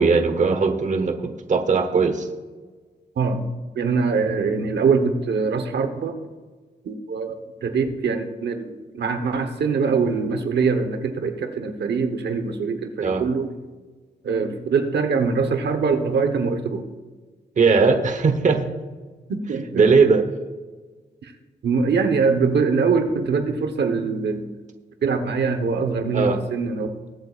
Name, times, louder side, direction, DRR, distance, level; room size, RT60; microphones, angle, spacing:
voice 1, 0.0-2.3 13.0-13.2 17.6-18.6 19.7-20.2 26.1-26.4, right 4 dB, 45° right, 7 dB, 1.0 m, -19 dB
voice 2, 3.2-3.5 3.7-6.2 6.8-13.5 14.2-16.8 19.3-20.1 21.2-21.3 21.6-24.5 25.0-26.9, right 5 dB, 75° right, 7 dB, 1.0 m, -23 dB
21.5 x 8.3 x 2.4 m, 1.4 s
wide cardioid pair, 115°, 17 cm